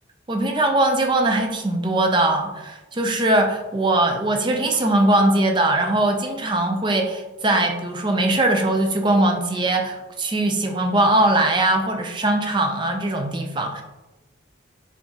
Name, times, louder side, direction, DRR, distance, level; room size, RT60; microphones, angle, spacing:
voice 1, 0.3-13.8, right 1 dB, 25° right, 4 dB, 0.4 m, -21 dB
sound 1, 4.7-4.8 5.6-5.8 6.9-7.1 8.6-8.8 9.8-9.9 11.2-11.3, right 1 dB, 25° left, 1.5 m, -41 dB
4.6 x 3.3 x 2.7 m, 1.1 s
head